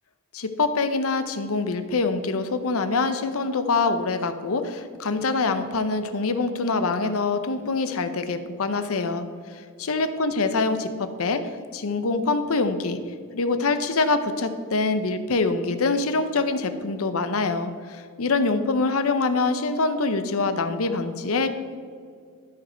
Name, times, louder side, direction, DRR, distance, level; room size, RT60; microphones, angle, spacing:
voice 1, 0.3-9.2 9.8-13.0 13.3-21.5, left 3 dB, 65° left, 9 dB, 0.7 m, -25 dB
13.0 x 5.1 x 4.5 m, 2.1 s
head